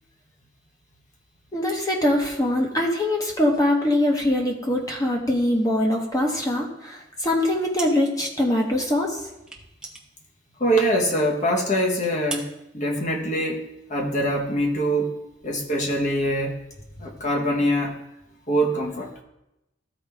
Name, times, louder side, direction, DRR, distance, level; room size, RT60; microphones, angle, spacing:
voice 1, 1.5-9.2, left 1 dB, 20° left, 0 dB, 1.1 m, -23 dB
sound 1, 7.7-8.3 8.6-8.7 9.4-10.9 11.2-11.4 11.8-12.5, right 3 dB, 5° right, 0.8 m, -37 dB
voice 2, 10.6-12.5 12.7-13.6 13.9-15.1 15.4-16.6 17.0-18.0 18.5-19.1, equal, 40° left, 0 dB, 1.2 m, -23 dB
13.5 x 4.7 x 3.5 m, 0.90 s
head